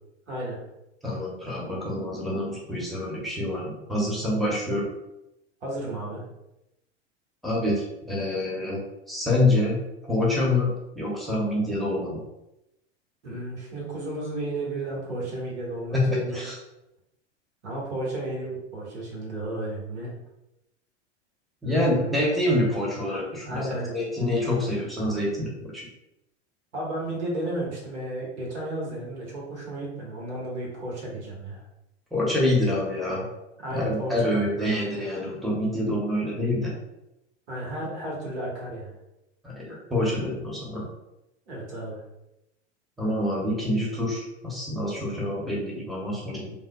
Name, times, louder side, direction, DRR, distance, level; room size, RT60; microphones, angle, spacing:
voice 1, 0.3-0.6 5.6-6.2 13.2-16.4 17.6-20.1 21.6-22.2 23.4-23.9 26.7-31.6 33.6-34.4 37.5-38.9 41.5-42.0, right 1 dB, 75° right, -5 dB, 1.4 m, -33 dB
voice 2, 1.0-4.9 7.4-8.8 9.1-12.2 15.9-16.6 21.6-25.8 32.1-33.3 33.7-36.7 39.4-40.9 43.0-46.5, left 1 dB, ahead, -5 dB, 0.7 m, -26 dB
3.4 x 2.2 x 2.2 m, 0.89 s
figure-of-eight pair, 90°, 35 cm